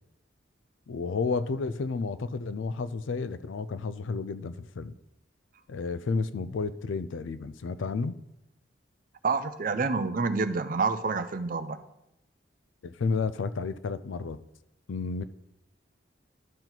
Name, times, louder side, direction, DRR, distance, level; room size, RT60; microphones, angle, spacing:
voice 1, 0.9-4.9 5.7-8.2 12.8-14.4 14.9-15.2, left 4 dB, 75° left, 0.4 m, -31 dB
voice 2, 9.2-11.8, right 4 dB, 45° right, 0.5 m, -28 dB
12.0 x 4.5 x 3.9 m
head